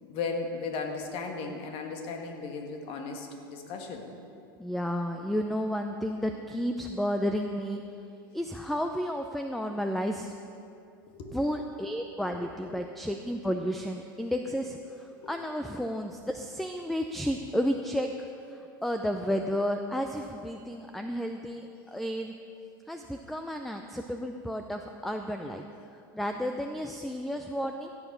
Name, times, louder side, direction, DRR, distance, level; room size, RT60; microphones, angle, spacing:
voice 1, 0.0-4.1 11.1-11.4 12.3-12.4 12.7-12.8 14.2-14.3 15.2-15.3, left 4 dB, 50° left, 3 dB, 1.8 m, -36 dB
voice 2, 4.6-7.8 8.3-10.3 11.3-18.1 18.5-22.3 22.9-25.6 26.1-27.9, equal, ahead, 5 dB, 0.5 m, -32 dB
15.5 x 7.2 x 5.4 m, 2.5 s
hypercardioid pair, 95°, 12 cm